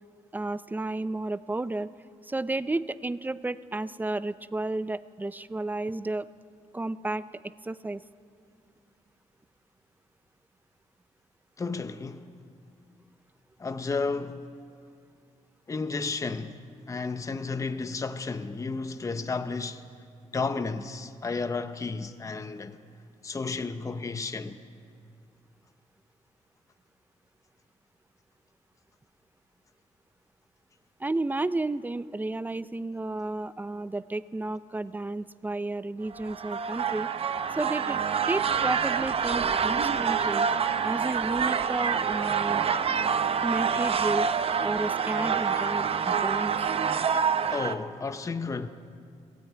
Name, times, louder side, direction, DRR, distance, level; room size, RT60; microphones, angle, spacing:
voice 1, 0.3-1.9 2.2-6.3 6.7-7.2 7.6-8.0 31.0-37.1 37.5-40.5 40.8-42.6 43.4-44.3 44.6-46.5, right 2 dB, 15° right, 0.5 m, -32 dB
voice 2, 11.6-12.3 13.6-14.5 15.7-16.6 16.9-19.8 20.3-22.8 23.2-24.6 47.5-48.7, left 4 dB, 25° left, 0.7 m, -32 dB
sound 1, 36.1-47.7, right 6 dB, 45° right, 0.7 m, -27 dB
20.5 x 16.5 x 9.1 m
wide cardioid pair, 135°, 14 cm